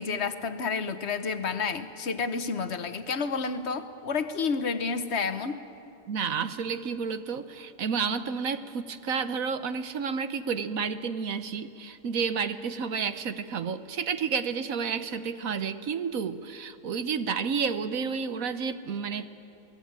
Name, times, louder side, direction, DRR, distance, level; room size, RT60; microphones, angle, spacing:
voice 1, 0.0-5.6, left 5 dB, 50° left, 10 dB, 1.3 m, -30 dB
voice 2, 6.1-19.3, right 6 dB, 65° right, 11 dB, 1.3 m, -31 dB
27.5 x 19.5 x 8.8 m, 2.7 s
omnidirectional pair, 1.6 m